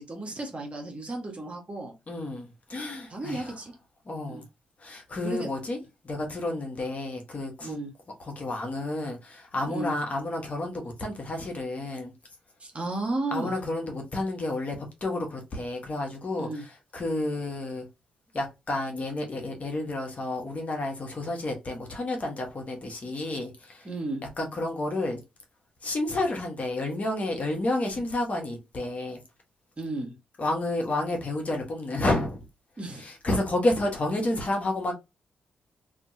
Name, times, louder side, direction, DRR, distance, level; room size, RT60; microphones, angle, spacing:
voice 1, 0.0-1.9 3.1-3.7 4.3-4.4 5.2-5.5 6.5-6.6 7.6-7.9 9.6-9.9 12.6-13.5 16.4-16.6 23.8-24.2 29.8-30.1 32.8-33.1, right 2 dB, 40° right, 1.3 m, -33 dB
voice 2, 2.1-3.5 4.0-4.4 4.8-5.8 6.0-7.8 8.2-12.1 13.3-17.9 18.3-23.9 24.4-25.2 25.8-29.2 30.4-32.4 33.0-34.9, left 2 dB, 45° left, 1.2 m, -30 dB
2.8 x 2.7 x 2.6 m
hypercardioid pair, 45°, 3 cm